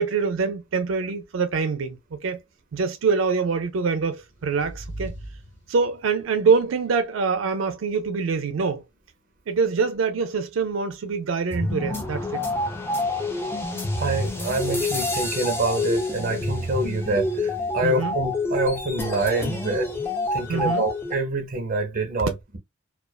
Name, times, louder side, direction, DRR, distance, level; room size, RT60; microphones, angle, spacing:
voice 1, 0.0-2.4 2.7-5.1 5.7-8.8 9.5-12.4 17.8-18.2 20.5-20.9, right 5 dB, 85° right, 0.4 m, -25 dB
sound 1, 4.2-6.2, right 1 dB, 65° left, 0.7 m, -40 dB
sound 2, 11.5-21.1, left 2 dB, 10° left, 0.4 m, -27 dB
voice 2, 14.0-19.9 20.3-22.6, right 2 dB, 45° right, 0.7 m, -26 dB
2.4 x 2.3 x 2.2 m
head